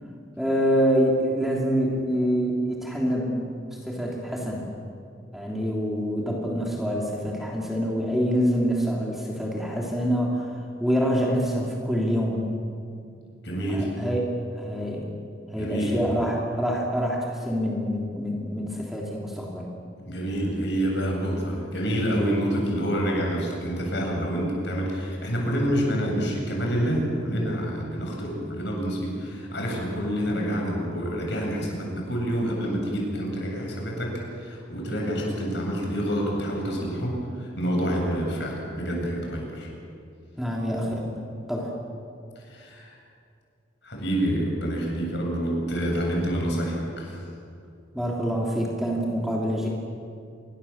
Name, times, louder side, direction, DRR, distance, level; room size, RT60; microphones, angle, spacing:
voice 1, 0.4-3.5 3.8-4.7 5.3-10.5 10.8-12.4 13.7-15.1 15.5-19.7 40.4-41.1 41.5-41.8 47.9-49.7, equal, ahead, -3 dB, 3.2 m, -26 dB
voice 2, 13.4-13.9 15.6-16.2 20.0-39.7 42.4-43.0 43.8-47.2, equal, 60° left, -1 dB, 8.0 m, -27 dB
27.5 x 23.0 x 7.4 m, 2.4 s
head